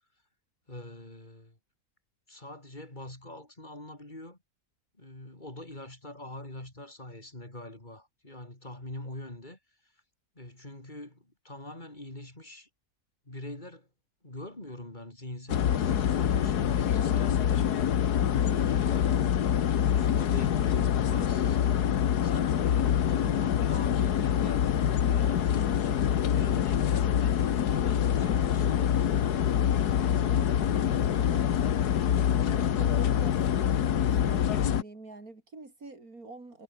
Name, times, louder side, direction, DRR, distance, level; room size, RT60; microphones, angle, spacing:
voice 1, 0.7-1.6 2.3-4.4 5.0-9.6 10.4-12.7 13.3-13.9 14.2-17.7 18.4-19.2 19.9-21.8 22.2-27.3 27.7-29.1, left 1 dB, 30° left, 5.3 m, -44 dB
sound 1, 15.5-34.8, left 9 dB, 80° left, 1.7 m, -25 dB
voice 2, 29.9-30.6 30.8-31.5 32.5-36.6, right 3 dB, 65° right, 4.7 m, -47 dB
omnidirectional pair, 1.7 m